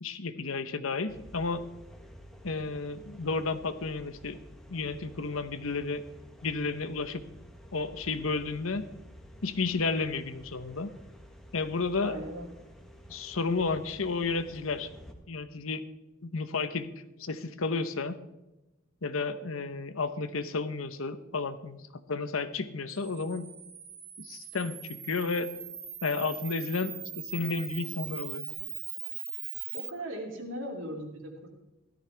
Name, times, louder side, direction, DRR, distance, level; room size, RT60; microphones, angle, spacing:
voice 1, 0.0-1.6 2.4-4.4 4.7-6.0 6.4-7.2 7.7-8.8 9.4-10.9 11.5-12.2 13.1-14.9 15.3-15.8 16.2-16.9 17.2-18.2 19.0-21.8 22.1-23.5 24.2-25.5 26.0-28.5, left 4 dB, 90° left, 11 dB, 1.0 m, -32 dB
sound 1, 1.1-15.1, equal, 5° left, 1.5 m, -51 dB
voice 2, 12.0-12.5 29.7-31.5, right 1 dB, 70° right, 1 dB, 2.9 m, -38 dB
Camera, 22.9-29.9, right 9 dB, 30° right, 1.2 m, -41 dB
16.5 x 13.5 x 3.5 m, 0.98 s
head